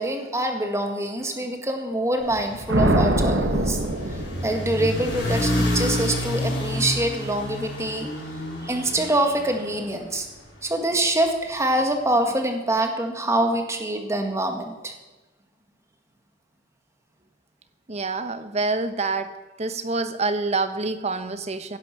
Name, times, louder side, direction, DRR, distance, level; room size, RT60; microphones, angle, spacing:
voice 1, 0.0-3.8 4.1-8.1 8.6-10.3 10.6-14.9, right 1 dB, 15° right, 4 dB, 1.8 m, -25 dB
sound 1, 2.2-10.6, left 1 dB, 65° left, 5.7 m, -29 dB
sound 2, 2.7-5.0, right 1 dB, 65° right, 1.6 m, -23 dB
voice 2, 17.9-19.3 19.6-21.8, right 3 dB, 35° right, 11 dB, 1.0 m, -26 dB
16.5 x 11.0 x 6.1 m, 1.1 s
head